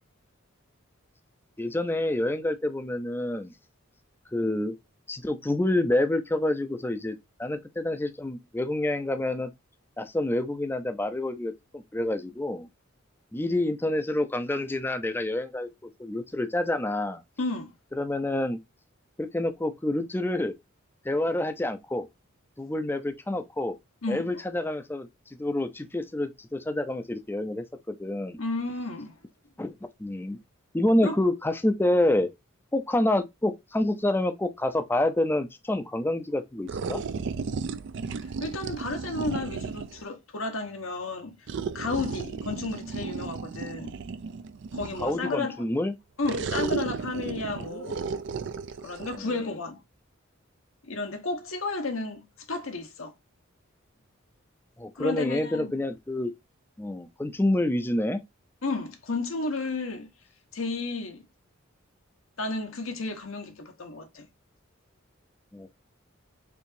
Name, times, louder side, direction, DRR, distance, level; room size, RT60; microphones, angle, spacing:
voice 1, 1.6-3.5 4.3-4.7 5.1-7.1 7.4-9.5 10.0-12.7 13.3-15.7 16.0-17.2 17.9-18.6 19.2-20.5 21.0-22.1 22.6-23.8 24.1-25.1 25.4-27.6 28.0-28.4 29.6-29.7 30.0-30.4 30.7-32.3 32.7-37.0 45.0-45.9 49.2-49.4 54.8-56.3 56.8-58.2 65.5-65.7, left 1 dB, 10° left, 0.4 m, -27 dB
voice 2, 17.4-17.7 24.0-24.4 28.4-29.2 31.0-31.2 38.2-41.4 41.7-44.0 44.7-45.7 46.2-48.0 48.8-49.8 50.8-53.1 54.9-55.8 58.6-60.1 60.5-61.2 62.4-64.3, left 3 dB, 80° left, 1.0 m, -32 dB
sound 1, 36.7-40.0 41.5-45.3 46.2-49.2, right 5 dB, 60° right, 0.4 m, -34 dB
4.4 x 2.8 x 2.6 m
head